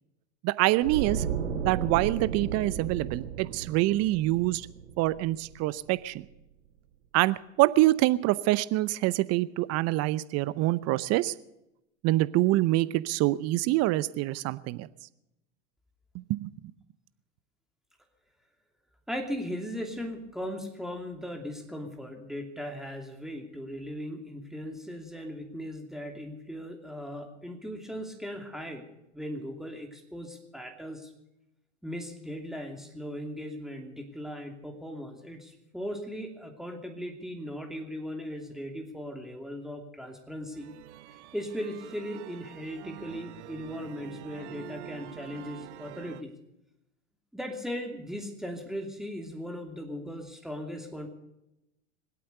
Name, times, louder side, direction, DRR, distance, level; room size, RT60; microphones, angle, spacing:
voice 1, 0.4-1.2 1.6-4.7 5.0-6.2 7.1-11.3 12.0-14.9 16.1-16.5, right 17 dB, 45° right, 17 dB, 0.7 m, -25 dB
sound 1, 0.8-5.9 6.2-6.4, right 7 dB, 85° right, 2.2 m, -34 dB
voice 2, 19.1-28.9 29.1-31.1 31.8-40.7 41.3-46.3 47.3-51.1, equal, ahead, 3 dB, 2.7 m, -38 dB
sound 2, 40.5-46.2, right 13 dB, 70° right, 1.1 m, -46 dB
24.0 x 8.6 x 6.8 m, 0.87 s
hypercardioid pair, 100°, 36 cm